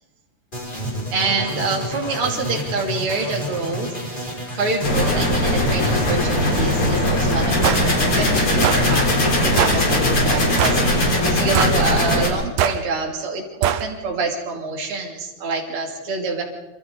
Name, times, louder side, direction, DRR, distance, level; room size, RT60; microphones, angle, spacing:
sound 1, 0.5-8.6, equal, 10° left, 5.7 m, -30 dB
voice 1, 1.1-16.4, right 3 dB, 40° right, 0 dB, 3.6 m, -26 dB
sound 2, 4.8-12.3, left 1 dB, 35° left, 4.7 m, -19 dB
sound 3, 7.6-7.9 8.6-8.9 9.6-9.8 10.6-10.9 11.6-11.8 12.6-12.8 13.6-13.9, right 10 dB, 85° right, 2.7 m, -21 dB
26.0 x 26.0 x 4.0 m, 1.1 s
omnidirectional pair, 4.1 m